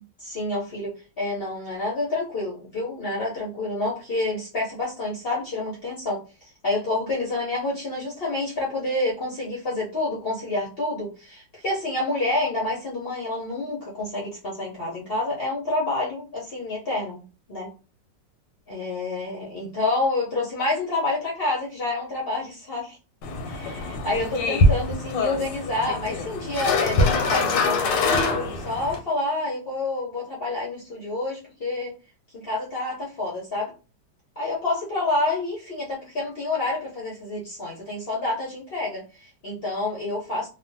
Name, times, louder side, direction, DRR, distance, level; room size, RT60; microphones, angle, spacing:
voice 1, 0.2-0.9 1.2-17.2 17.5-17.7 18.7-23.0 23.4-31.9 32.3-33.7 34.4-40.5, left 2 dB, 55° left, -5 dB, 0.6 m, -28 dB
sound 1, 23.2-29.0, left 2 dB, 85° left, 1.3 m, -24 dB
3.2 x 2.2 x 2.7 m, 0.33 s
omnidirectional pair, 2.0 m